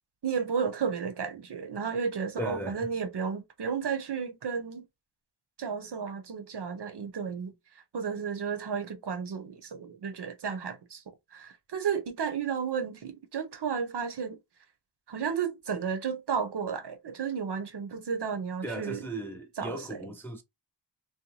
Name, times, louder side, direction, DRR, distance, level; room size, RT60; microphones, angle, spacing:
voice 1, 0.2-4.9 5.6-7.5 7.9-11.0 11.3-14.4 15.1-19.1 19.6-20.0, right 6 dB, 60° right, 0.6 m, -33 dB
voice 2, 2.4-2.9 18.6-20.4, right 1 dB, 5° left, 0.4 m, -37 dB
2.7 x 2.2 x 2.9 m
wide cardioid pair, 80°, 46 cm